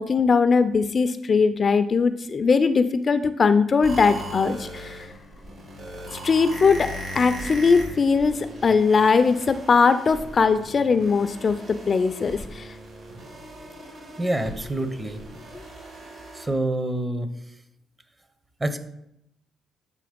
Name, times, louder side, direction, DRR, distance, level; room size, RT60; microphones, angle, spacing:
voice 1, 0.0-5.1 6.1-12.7, left 5 dB, 40° left, 11 dB, 0.3 m, -20 dB
sound 1, 3.8-16.5, equal, 55° right, 2.4 m, -39 dB
voice 2, 14.2-15.2 16.3-17.3 18.6-18.8, right 1 dB, 20° right, 9 dB, 0.7 m, -26 dB
7.7 x 3.1 x 5.1 m, 0.79 s
cardioid pair, 90°, 0 cm